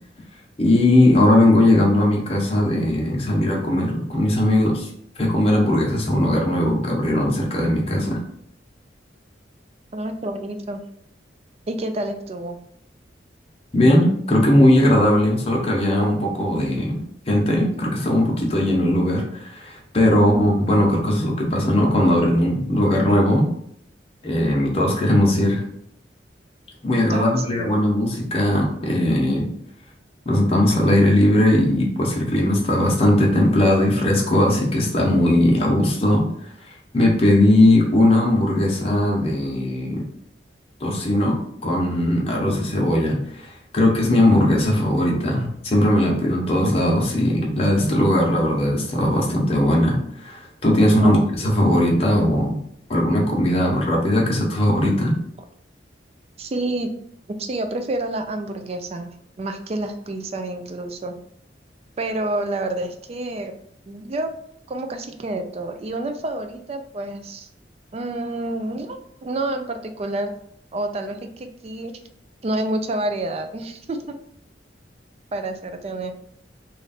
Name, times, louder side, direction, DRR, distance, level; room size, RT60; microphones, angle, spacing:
voice 1, 0.6-4.9 5.2-8.2 13.7-17.0 17.3-23.5 24.2-25.6 26.8-29.5 30.3-36.5 36.9-40.0 40.8-52.5 52.9-55.1, left 1 dB, 35° left, -2 dB, 0.9 m, -19 dB
voice 2, 9.9-10.8 11.7-12.6 20.1-20.4 27.1-27.8 50.8-51.2 54.8-54.9 56.4-56.9 57.4-59.1 59.4-61.1 62.0-63.5 63.9-64.3 64.7-67.5 67.9-70.3 70.7-71.9 72.4-74.2 75.3-76.1, right 1 dB, 35° right, 7 dB, 0.4 m, -28 dB
3.2 x 2.5 x 4.1 m, 0.69 s
head